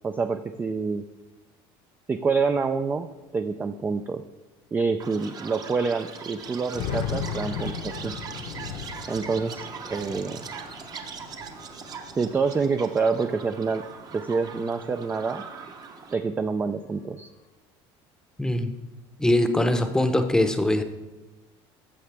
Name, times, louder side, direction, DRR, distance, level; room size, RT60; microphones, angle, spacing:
voice 1, 0.0-1.0 2.1-4.2 4.7-8.2 9.1-10.4 12.2-13.8 14.1-15.4 16.1-17.3, right 4 dB, 15° right, 8 dB, 0.3 m, -27 dB
sound 1, 3.1-3.2 4.1-4.2 4.6-4.7 6.4-12.8 13.2-14.2, left 8 dB, 65° left, 0.9 m, -36 dB
Chirp tweet, 5.0-16.1, right 6 dB, 35° right, 0.8 m, -40 dB
voice 2, 18.4-18.7 19.2-20.8, left 1 dB, 5° left, 7 dB, 0.7 m, -22 dB
14.0 x 6.4 x 3.4 m, 1.1 s
cardioid pair, 125°, 12 cm